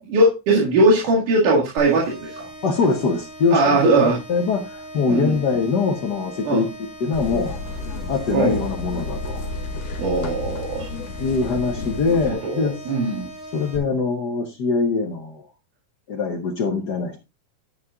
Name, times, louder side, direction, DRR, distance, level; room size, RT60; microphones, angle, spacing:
voice 1, 0.1-2.5 3.5-4.2 5.1-5.3 6.4-6.6 8.3-8.6 10.0-10.9 12.4-13.3, right 2 dB, 75° right, -3 dB, 3.5 m, -19 dB
sound 1, 1.8-13.8, right 1 dB, 20° right, 3.4 m, -39 dB
voice 2, 2.6-7.6 8.1-9.5 11.2-12.8 13.5-15.4 16.1-17.2, left 4 dB, 85° left, 4 dB, 0.9 m, -23 dB
sound 2, 7.1-12.3, left 3 dB, 65° left, 2.0 m, -31 dB
10.0 x 9.7 x 2.4 m, 0.24 s
omnidirectional pair, 3.7 m